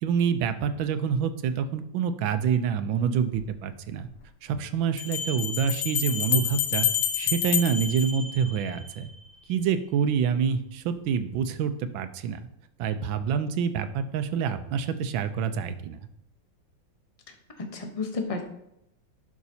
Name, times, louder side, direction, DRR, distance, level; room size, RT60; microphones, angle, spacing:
voice 1, 0.0-4.1 4.4-6.9 7.1-9.1 9.5-12.4 12.8-16.0, right 7 dB, 85° right, 10 dB, 1.4 m, -27 dB
Bell, 3.3-3.4 5.0-8.9, left 9 dB, 70° left, 1.3 m, -28 dB
voice 2, 17.3-18.4, left 3 dB, 35° left, 4 dB, 0.5 m, -33 dB
11.0 x 6.0 x 2.8 m, 0.80 s
omnidirectional pair, 2.1 m